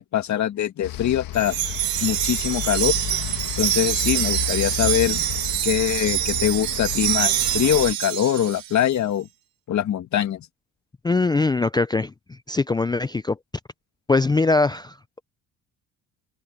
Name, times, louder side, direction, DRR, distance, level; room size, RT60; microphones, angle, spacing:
voice 1, 0.0-1.6 2.0-3.0 3.6-5.2 5.6-9.3 9.7-10.5, left 10 dB, 55° left, 2.0 m, -23 dB
sound 1, 0.8-7.9, left 14 dB, 75° left, 1.7 m, -32 dB
Wind chime, 1.3-8.8, right 15 dB, 75° right, 1.8 m, -25 dB
voice 2, 11.0-12.1 12.5-13.4 14.1-15.0, left 3 dB, 10° left, 0.4 m, -21 dB
cardioid pair, 110°, 35 cm